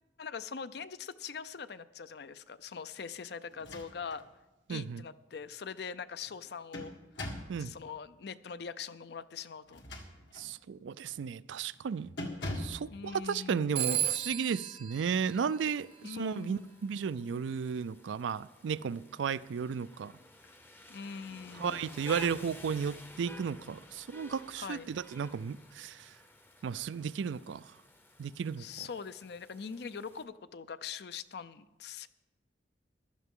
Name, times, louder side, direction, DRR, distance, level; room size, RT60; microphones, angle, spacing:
voice 1, 0.2-4.2 4.7-6.9 7.6-9.8 12.9-13.7 16.0-16.8 20.9-22.0 24.5-24.9 28.6-32.1, left 6 dB, 60° left, 0.5 m, -42 dB
sound 1, 3.5-4.3 4.7-4.8 6.3-7.6 9.6-10.5 11.0-11.3 11.6-11.8 12.2-12.9, left 1 dB, 75° left, 1.8 m, -41 dB
voice 2, 4.7-5.0 7.5-7.7 10.3-12.1 12.6-20.1 21.6-26.1 26.6-27.7 28.2-28.6, right 6 dB, 85° right, 0.4 m, -34 dB
Telephone, 13.8-16.3, right 11 dB, 35° right, 0.6 m, -35 dB
Rain, 15.1-30.2, left 1 dB, 10° left, 0.6 m, -53 dB
15.5 x 12.0 x 3.7 m
head